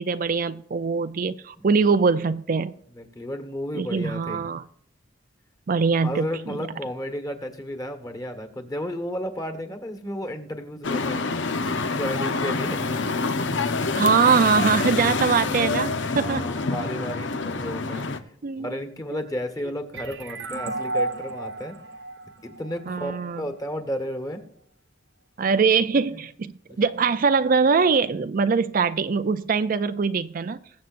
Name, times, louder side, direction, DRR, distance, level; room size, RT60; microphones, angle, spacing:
voice 1, 0.0-2.7 3.7-4.6 5.7-6.6 13.9-16.4 18.4-18.7 22.9-23.4 25.4-30.6, right 5 dB, 50° right, 0.5 m, -22 dB
voice 2, 2.9-4.4 6.0-11.2 11.9-12.8 16.1-18.1 18.6-21.8 22.4-24.4 26.1-26.2 26.7-26.8, equal, 20° left, 1.5 m, -33 dB
sound 1, 10.8-18.2, left 3 dB, 85° left, 0.9 m, -26 dB
sound 2, 19.9-23.4, right 2 dB, 80° right, 1.4 m, -32 dB
21.5 x 7.8 x 2.6 m
head